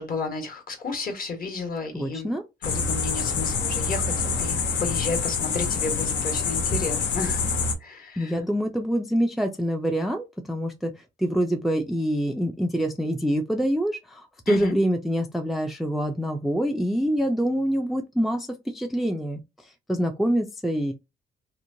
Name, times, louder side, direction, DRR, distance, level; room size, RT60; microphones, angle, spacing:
voice 1, 0.0-2.3 2.6-7.4 7.8-8.3 14.5-14.7, left 3 dB, 45° left, 1.1 m, -32 dB
voice 2, 1.9-2.4 8.2-10.9 11.2-19.4 19.9-20.9, equal, ahead, 0.3 m, -25 dB
sound 1, 2.6-7.8, left 5 dB, 70° left, 0.6 m, -26 dB
2.9 x 2.1 x 2.6 m
cardioid pair, 90°, 20 cm